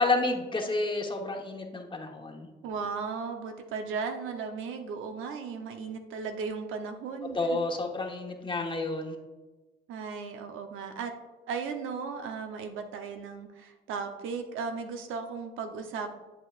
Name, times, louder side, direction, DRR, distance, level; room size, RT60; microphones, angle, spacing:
voice 1, 0.0-2.5 7.3-9.2, left 2 dB, 25° left, 2 dB, 1.1 m, -30 dB
voice 2, 2.6-7.6 9.9-11.1 11.5-16.1, right 5 dB, 90° right, 5 dB, 0.8 m, -36 dB
8.1 x 7.9 x 2.5 m, 1.2 s
cardioid pair, 90°, 20 cm